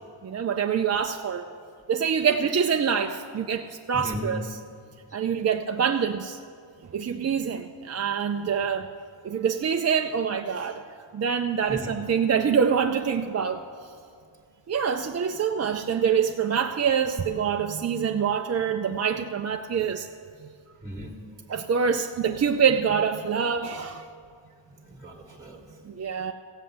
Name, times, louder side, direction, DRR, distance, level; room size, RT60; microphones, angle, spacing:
voice 1, 0.2-1.5 1.9-4.4 5.1-6.4 6.9-8.9 9.2-10.8 11.1-13.7 14.7-20.1 21.5-24.1 25.8-26.3, right 7 dB, 35° right, 4 dB, 0.4 m, -25 dB
voice 2, 3.9-4.4 5.1-5.2 11.7-11.9 20.8-21.1 24.7-25.7, equal, 5° right, 0 dB, 1.4 m, -36 dB
15.5 x 7.7 x 7.9 m, 2.3 s
wide cardioid pair, 155°, 48 cm